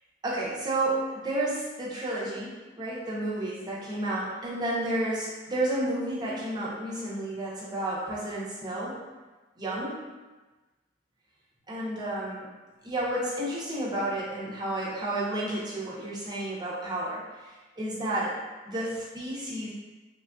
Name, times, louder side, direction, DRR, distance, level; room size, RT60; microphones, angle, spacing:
voice 1, 0.2-9.0 9.6-10.0 11.7-12.5 12.8-17.2 17.8-18.3 18.7-19.7, right 1 dB, 25° right, -7 dB, 0.7 m, -31 dB
3.4 x 2.4 x 2.2 m, 1.2 s
head